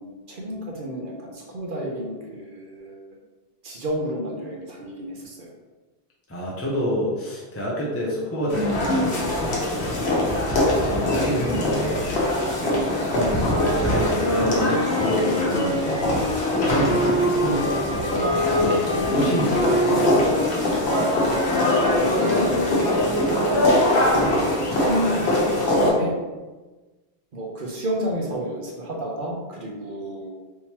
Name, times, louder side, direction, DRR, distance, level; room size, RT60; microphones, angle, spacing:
voice 1, 0.0-3.0 3.6-5.5 12.5-13.0 21.7-22.6 23.3-26.2 27.3-30.4, equal, 60° right, -1 dB, 0.9 m, -31 dB
voice 2, 6.3-9.6 10.4-12.2 13.1-20.5, equal, 20° left, -4 dB, 0.4 m, -28 dB
sound 1, 8.5-25.9, left 1 dB, 80° left, 1.1 m, -23 dB
sound 2, 13.5-23.8, equal, 85° right, 1.1 m, -27 dB
3.5 x 2.9 x 2.9 m, 1.2 s
omnidirectional pair, 1.1 m